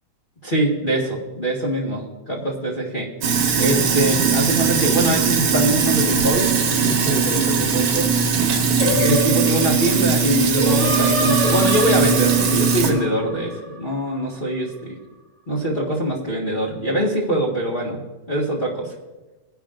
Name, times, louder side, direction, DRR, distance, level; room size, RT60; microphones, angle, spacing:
voice 1, 0.4-3.1 3.6-6.5 6.8-8.1 9.0-15.0 15.5-18.0 18.3-18.9, right 1 dB, 25° left, -6 dB, 1.1 m, -23 dB
Sink (filling or washing), 3.2-12.9, right 5 dB, 75° right, 2.7 m, -19 dB
Singing, 8.8-14.1, left 1 dB, 70° left, 4.4 m, -27 dB
20.0 x 10.5 x 2.6 m, 1.2 s
omnidirectional pair, 3.4 m